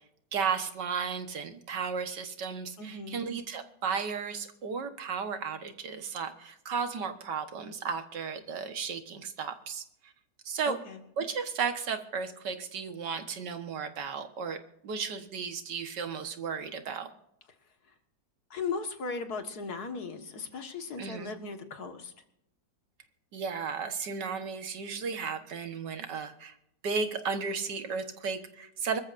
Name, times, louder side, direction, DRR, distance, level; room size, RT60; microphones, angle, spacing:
voice 1, 0.3-9.8 10.5-10.8 11.2-14.6 14.8-17.1 21.0-21.3 23.3-26.5 26.8-29.0, right 6 dB, 85° right, 7 dB, 1.9 m, -34 dB
voice 2, 2.8-3.3 10.7-11.0 18.5-22.1, left 4 dB, 65° left, 6 dB, 2.1 m, -37 dB
25.5 x 13.5 x 2.6 m, 0.78 s
omnidirectional pair, 1.8 m